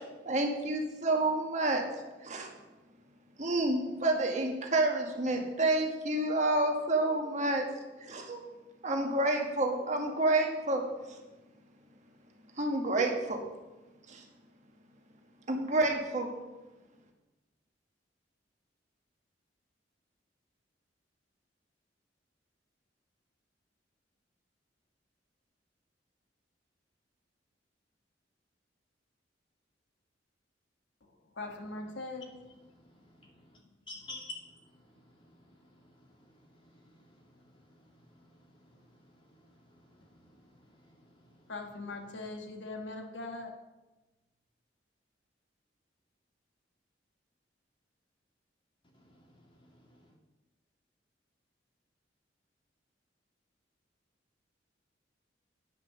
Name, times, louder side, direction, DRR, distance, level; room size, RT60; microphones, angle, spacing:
voice 1, 0.2-1.8 2.2-2.5 3.4-7.6 8.0-8.4 8.8-10.8 12.6-13.4 14.1-14.2 15.5-16.3, right 2 dB, 40° right, 1.4 m, -29 dB
voice 2, 31.3-32.3 41.5-43.5, left 2 dB, 85° left, 1.4 m, -40 dB
voice 3, 32.7-33.6 33.9-41.5 48.9-50.1, left 2 dB, 30° left, 2.1 m, -53 dB
9.7 x 5.7 x 6.8 m
head